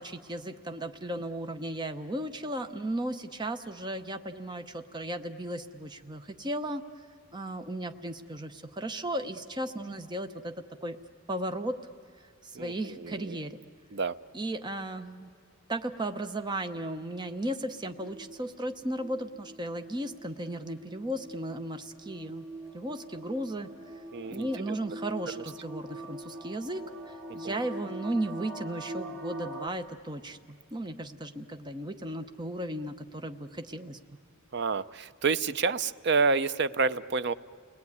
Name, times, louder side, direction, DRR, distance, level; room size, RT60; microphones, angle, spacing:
voice 1, 0.0-6.8 7.3-10.5 10.8-11.0 11.3-11.8 12.4-13.6 14.3-15.3 15.7-22.5 22.7-23.7 24.3-30.4 30.7-34.0, right 1 dB, 20° right, 7 dB, 0.8 m, -35 dB
voice 2, 12.5-13.4 13.9-14.2 24.1-24.8 25.3-25.4 27.4-27.6 34.5-37.3, right 4 dB, 55° right, 14 dB, 0.6 m, -29 dB
sound 1, 17.7-29.7, right 1 dB, 80° right, 2.4 m, -43 dB
30.0 x 19.5 x 9.6 m, 2.3 s
head